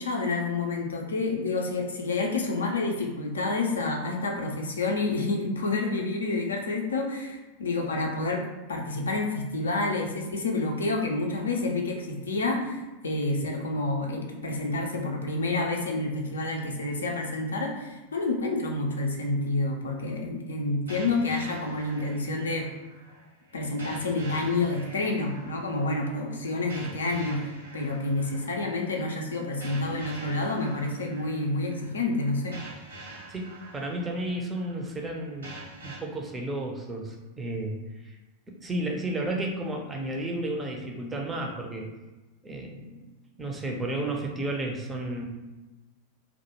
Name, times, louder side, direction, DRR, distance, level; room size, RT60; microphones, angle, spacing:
voice 1, 0.0-22.7 23.5-32.6, left 2 dB, 70° left, 1 dB, 0.4 m, -29 dB
sound 1, 20.9-36.0, right 2 dB, 75° right, 0.7 m, -46 dB
voice 2, 33.3-37.8 38.0-38.2 38.5-41.9 42.4-43.0 43.4-45.2, right 1 dB, 15° right, 1 dB, 0.4 m, -33 dB
2.2 x 2.0 x 2.9 m, 1.1 s
figure-of-eight pair, 90°, 0 cm